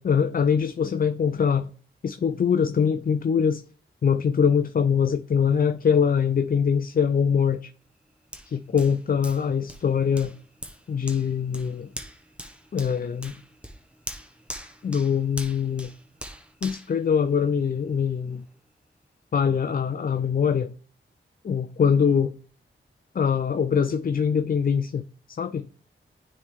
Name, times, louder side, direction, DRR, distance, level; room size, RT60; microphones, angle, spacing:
voice 1, 0.0-1.7 2.0-3.6 4.0-7.7 8.5-10.3 10.9-11.9 12.7-13.4 14.8-15.9 16.6-18.4 19.3-20.7 21.4-22.3 23.1-25.7, left 7 dB, 45° left, 0.4 m, -23 dB
Hands, 8.3-17.8 18.3-18.4, equal, 5° right, 0.9 m, -42 dB
9.3 x 3.2 x 3.6 m
cardioid pair, 50°, 21 cm